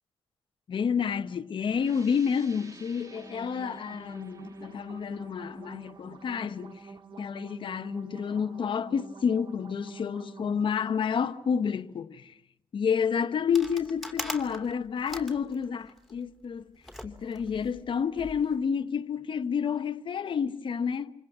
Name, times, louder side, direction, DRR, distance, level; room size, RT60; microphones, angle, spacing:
voice 1, 0.7-6.8 7.2-12.4 12.7-16.7 17.0-21.1, left 6 dB, 55° left, 1.0 m, -29 dB
sound 1, 1.7-7.1, right 3 dB, 35° right, 2.3 m, -54 dB
sound 2, 3.0-11.0, right 3 dB, 55° right, 1.6 m, -47 dB
sound 3, 13.5-16.2 16.8-18.5, equal, ahead, 3.0 m, -41 dB
29.0 x 27.0 x 6.0 m
cardioid pair, 90°, 10 cm